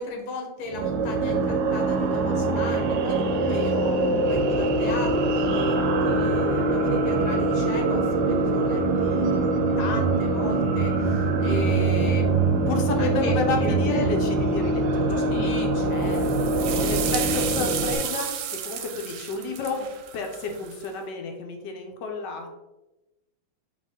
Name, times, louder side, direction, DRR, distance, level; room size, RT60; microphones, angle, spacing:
voice 1, 0.0-14.2 15.3-17.7 18.1-18.2 19.7-19.9, left 3 dB, 85° left, 1 dB, 1.7 m, -36 dB
sound 1, 0.7-18.0, right 2 dB, 70° right, 1.2 m, -23 dB
voice 2, 12.7-15.2 16.8-22.5, left 4 dB, 70° left, 3 dB, 1.2 m, -30 dB
sound 2, 16.0-20.9, right 9 dB, 90° right, 1.4 m, -33 dB
4.2 x 3.5 x 3.6 m, 1.0 s
omnidirectional pair, 2.3 m